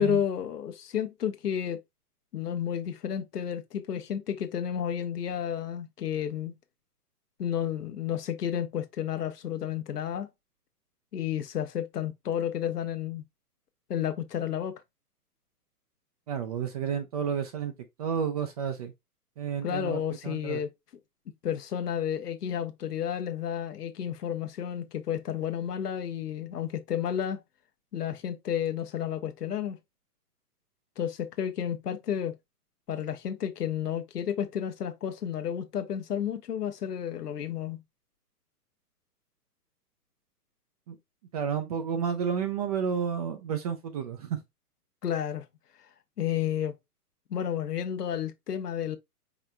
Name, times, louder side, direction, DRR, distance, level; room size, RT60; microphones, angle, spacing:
voice 1, 0.0-1.8 2.3-6.5 7.4-10.3 11.1-13.2 13.9-14.7 19.6-20.7 21.4-27.4 27.9-29.8 31.0-32.3 32.9-37.8 45.0-45.5 46.2-46.7 47.3-49.0, left 9 dB, 75° left, 1.0 m, -31 dB
voice 2, 16.3-17.7 18.0-18.9 19.4-20.6 40.9-41.0 41.3-44.4, right 7 dB, 25° right, 0.5 m, -31 dB
5.0 x 4.3 x 2.3 m
hypercardioid pair, 125°, 47 cm